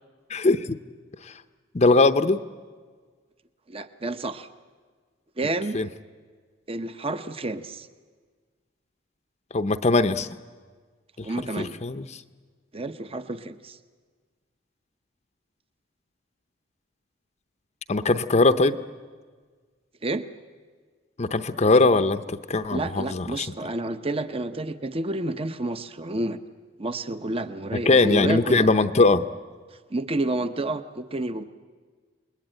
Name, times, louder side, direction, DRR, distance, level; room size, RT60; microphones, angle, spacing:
voice 1, 0.3-0.8 1.7-2.4 5.7-5.9 9.5-10.3 11.2-11.3 11.6-12.0 17.9-18.8 21.2-23.5 27.9-29.3, left 3 dB, 35° left, 10 dB, 0.7 m, -20 dB
voice 2, 3.7-4.5 5.4-5.8 6.7-7.9 11.2-11.8 12.7-13.8 20.0-20.2 22.7-26.4 26.8-28.7 29.9-31.4, right 2 dB, 30° right, 10 dB, 0.9 m, -30 dB
28.5 x 21.0 x 8.9 m, 1.5 s
head